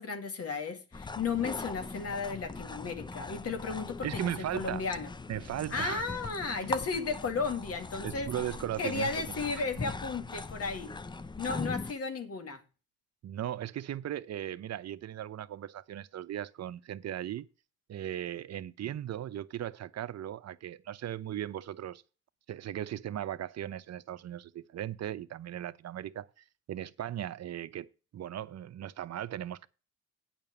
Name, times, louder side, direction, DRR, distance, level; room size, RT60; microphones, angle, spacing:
voice 1, 0.0-5.1 5.7-8.3 8.8-11.0 11.4-12.6, left 4 dB, 55° left, 2.1 m, -34 dB
sound 1, 0.9-11.9, left 3 dB, 15° left, 0.5 m, -41 dB
voice 2, 4.0-4.8 5.3-6.0 6.5-6.7 8.0-9.7 13.2-17.5 17.9-22.0 22.5-26.3 26.7-27.9 28.1-29.7, right 11 dB, 60° right, 0.8 m, -37 dB
9.0 x 5.9 x 6.7 m
cardioid pair, 90°, 30 cm